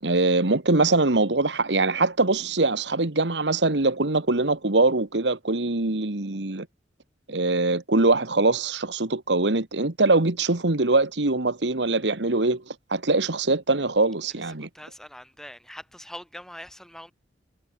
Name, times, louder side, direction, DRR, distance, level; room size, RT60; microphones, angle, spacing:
voice 1, 0.0-6.7 7.3-14.7, right 2 dB, 85° right, 1.8 m, -23 dB
voice 2, 14.2-17.1, equal, 5° left, 7.1 m, -43 dB
head